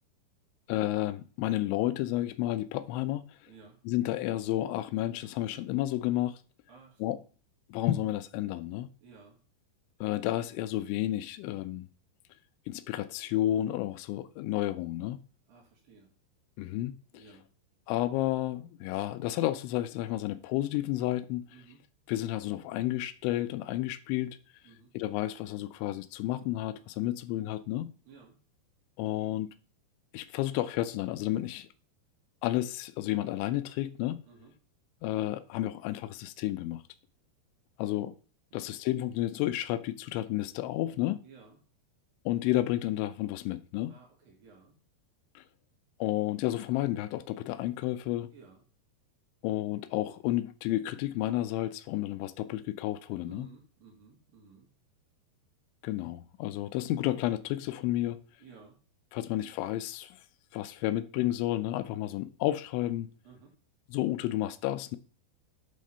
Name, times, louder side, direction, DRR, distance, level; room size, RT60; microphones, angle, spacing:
voice 1, 0.7-3.2 3.9-6.4 7.0-7.2 7.7-8.9 10.0-11.8 12.7-15.2 16.6-17.0 17.9-21.4 22.1-24.4 24.9-27.9 29.0-29.5 30.1-31.7 32.4-34.2 35.0-36.8 37.8-38.1 38.5-41.2 42.3-44.0 45.4-45.5 46.0-48.3 49.4-53.5 55.8-58.2 59.1-60.2 60.5-63.1 63.9-65.0, left 14 dB, 85° left, 3.0 m, -31 dB
voice 2, 3.5-3.8 6.7-7.2 9.0-9.4 15.5-16.1 17.1-17.5 21.5-21.8 24.6-24.9 28.0-28.4 34.2-34.5 38.6-38.7 41.2-41.6 43.9-44.8 48.3-48.6 53.2-54.7 58.4-58.8 63.2-63.6, right 5 dB, 60° right, 3.0 m, -55 dB
10.0 x 3.7 x 5.5 m
omnidirectional pair, 5.3 m